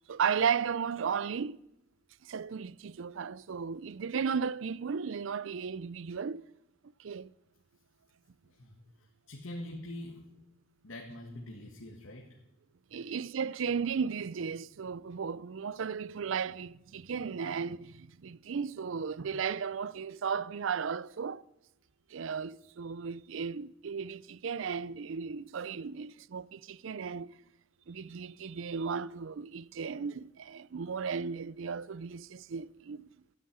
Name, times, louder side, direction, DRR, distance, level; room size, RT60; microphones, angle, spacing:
voice 1, 0.1-1.6 2.3-6.4 7.0-7.3 12.9-21.4 22.1-27.3 27.9-33.1, right 6 dB, 65° right, 0.4 m, -35 dB
voice 2, 9.0-10.3 10.8-12.4, left 1 dB, 70° left, 2.0 m, -44 dB
13.0 x 9.5 x 9.4 m
head